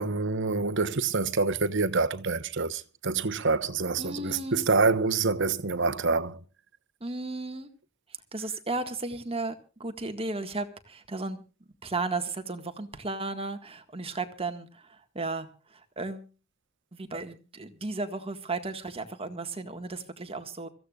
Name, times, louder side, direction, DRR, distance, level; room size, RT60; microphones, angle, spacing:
voice 1, 0.0-6.4, right 4 dB, 65° right, 1.0 m, -26 dB
voice 2, 4.0-4.7 7.0-7.7 8.3-11.4 11.8-16.3 16.9-20.7, right 3 dB, 30° right, 1.8 m, -35 dB
25.5 x 15.0 x 2.4 m
head